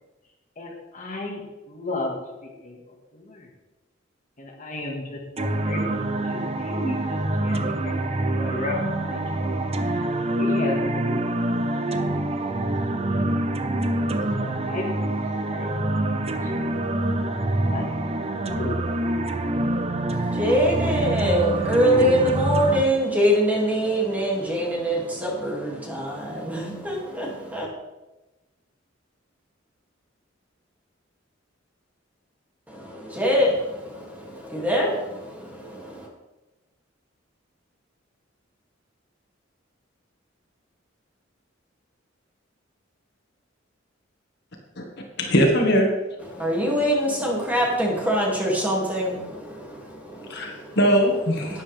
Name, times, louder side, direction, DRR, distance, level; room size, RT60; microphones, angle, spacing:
voice 1, 0.6-2.1 2.4-2.8 3.1-3.5 4.4-9.2 9.9-11.5 11.8-13.3 14.4-15.2 15.5-15.8 16.4-17.0 17.4-19.1, left 2 dB, 40° left, 1.8 m, -35 dB
sound 1, 5.4-22.8, right 1 dB, 30° right, 0.7 m, -26 dB
voice 2, 20.1-27.7 32.7-36.1 46.2-50.8 51.4-51.6, equal, 10° right, 2.5 m, -24 dB
voice 3, 45.2-45.9 50.3-51.6, equal, 60° left, 1.8 m, -20 dB
12.0 x 9.7 x 3.5 m
head